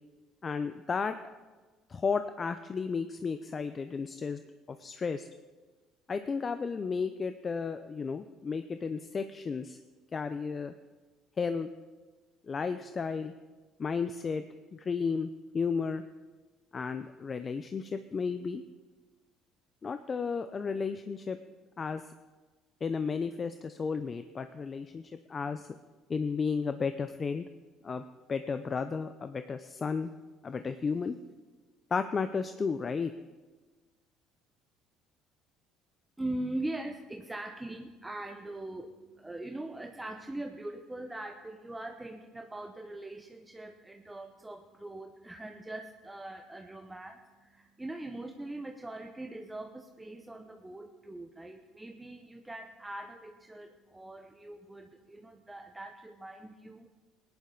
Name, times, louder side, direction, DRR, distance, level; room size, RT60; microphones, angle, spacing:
voice 1, 0.4-1.1 1.9-4.4 4.7-5.3 6.1-9.8 10.1-10.7 11.4-11.7 12.5-13.3 13.8-14.4 14.7-16.0 16.7-18.6 19.8-21.4 21.8-22.0 22.8-25.7 26.1-27.4 27.8-28.0 28.3-30.1 30.4-31.1 31.9-33.1, left 5 dB, 35° left, 10 dB, 0.5 m, -33 dB
voice 2, 36.2-56.9, right 1 dB, 10° right, 4 dB, 0.8 m, -41 dB
16.5 x 10.5 x 3.9 m, 1.3 s
supercardioid pair, 80°, 0 cm